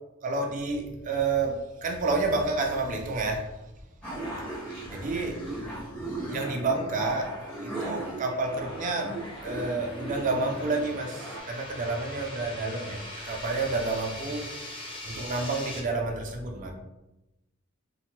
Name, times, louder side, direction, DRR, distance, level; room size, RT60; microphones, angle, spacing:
voice 1, 0.2-3.5 4.8-5.5 5.7-7.3 7.6-14.5 15.0-16.7, right 3 dB, 40° right, 2 dB, 0.4 m, -30 dB
sound 1, 4.0-11.4, right 1 dB, 5° left, 1.0 m, -37 dB
sound 2, 5.4-15.8, left 1 dB, 25° left, 0.5 m, -43 dB
2.8 x 2.1 x 2.9 m, 0.99 s
head